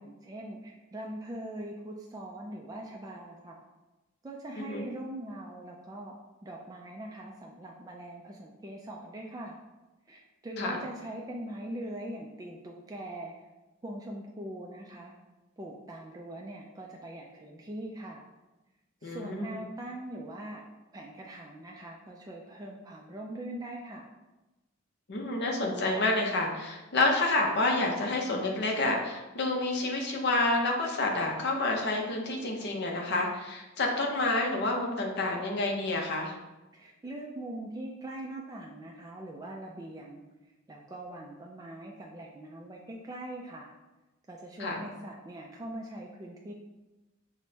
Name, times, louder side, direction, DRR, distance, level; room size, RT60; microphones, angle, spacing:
voice 1, 0.0-3.6 4.2-6.1 6.4-9.6 10.1-13.3 13.8-15.1 15.6-18.2 19.0-20.6 20.9-24.1 36.7-40.2 40.7-43.7 44.3-46.5, right 1 dB, 20° right, -1 dB, 0.3 m, -42 dB
voice 2, 4.6-4.9 10.6-10.8 19.0-19.6 25.1-36.3 44.6-44.8, left 2 dB, 55° left, 1 dB, 0.7 m, -29 dB
6.0 x 2.1 x 2.7 m, 1.1 s
head